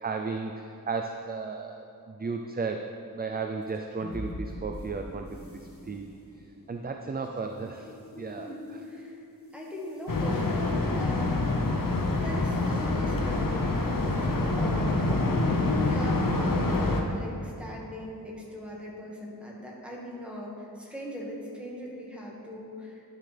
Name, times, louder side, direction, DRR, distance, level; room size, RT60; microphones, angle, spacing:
voice 1, 0.0-6.1 6.7-7.9 8.2-8.5, right 4 dB, 25° right, 4 dB, 0.4 m, -34 dB
sound 1, 3.6-14.1, left 1 dB, 35° left, 1.6 m, -44 dB
voice 2, 8.4-9.3 9.5-11.6 12.1-15.1 15.8-23.0, equal, 5° right, -4 dB, 1.7 m, -40 dB
sound 2, 10.1-17.0, left 2 dB, 60° left, 0.9 m, -26 dB
11.0 x 6.4 x 3.4 m, 2.6 s
wide cardioid pair, 60°, 37 cm